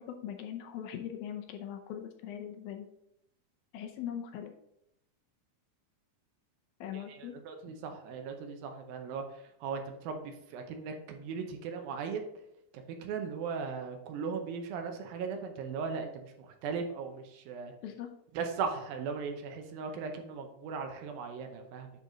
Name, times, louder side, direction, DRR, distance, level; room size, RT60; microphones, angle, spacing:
voice 1, 0.0-2.9 3.7-4.5 6.8-7.3 7.7-7.8 17.8-18.1, left 9 dB, 75° left, 5 dB, 2.4 m, -41 dB
voice 2, 6.9-12.2 12.7-17.7 18.3-21.9, right 5 dB, 75° right, 5 dB, 2.5 m, -38 dB
10.0 x 4.1 x 3.9 m, 0.80 s
omnidirectional pair, 4.5 m